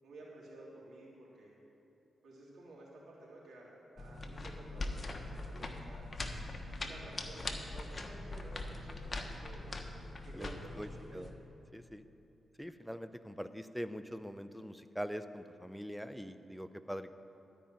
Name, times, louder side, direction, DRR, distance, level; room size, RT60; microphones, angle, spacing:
voice 1, 0.0-1.5 2.2-6.0 6.8-9.7 10.2-11.2, right 1 dB, 65° right, -5 dB, 3.3 m, -53 dB
sound 1, 4.0-11.3, left 2 dB, 35° left, 1.2 m, -42 dB
voice 2, 10.3-10.9 11.1-11.3 11.7-12.0 12.6-17.1, equal, ahead, 11 dB, 0.6 m, -43 dB
12.5 x 5.4 x 9.0 m, 2.8 s
cardioid pair, 55°, 0 cm